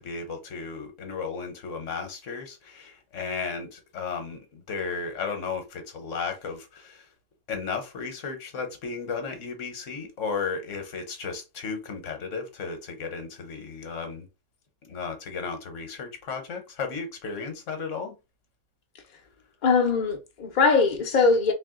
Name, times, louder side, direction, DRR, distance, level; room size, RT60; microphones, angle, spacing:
voice 1, 0.0-7.1 7.5-14.2 14.8-18.2, left 5 dB, 60° left, 1.3 m, -34 dB
voice 2, 19.6-21.5, left 4 dB, 40° left, 0.8 m, -21 dB
3.5 x 2.7 x 3.7 m
omnidirectional pair, 1.5 m